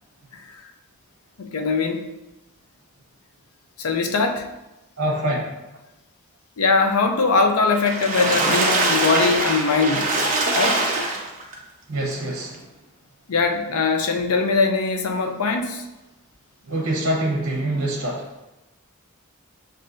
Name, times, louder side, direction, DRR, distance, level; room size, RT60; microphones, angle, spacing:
voice 1, 1.4-2.1 3.8-4.4 6.6-10.1 10.6-10.8 13.3-15.8, left 4 dB, 85° left, 5 dB, 0.6 m, -21 dB
voice 2, 5.0-5.5 11.9-12.6 16.7-18.2, right 1 dB, 70° right, -3 dB, 1.0 m, -25 dB
Water / Splash splatter, 7.7-11.5 12.1-12.2 12.5-12.6, right 2 dB, 35° right, 0.7 m, -22 dB
7.4 x 2.7 x 2.6 m, 0.98 s
head